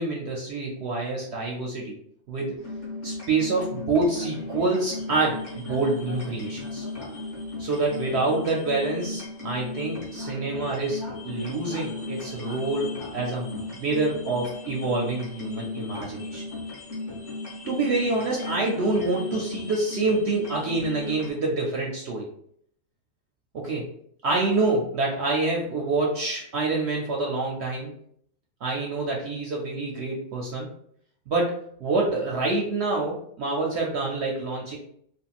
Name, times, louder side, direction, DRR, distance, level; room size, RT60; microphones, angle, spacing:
voice 1, 0.0-2.0 2.3-2.7 3.0-6.9 7.6-16.4 17.7-22.3 23.5-23.9 24.2-27.9 28.6-30.7 31.3-31.5 31.8-34.8, right 3 dB, 65° right, -1 dB, 0.8 m, -27 dB
sound 1, 2.6-21.3, left 2 dB, 30° left, 0.8 m, -36 dB
3.5 x 2.4 x 2.4 m, 0.67 s
omnidirectional pair, 1.4 m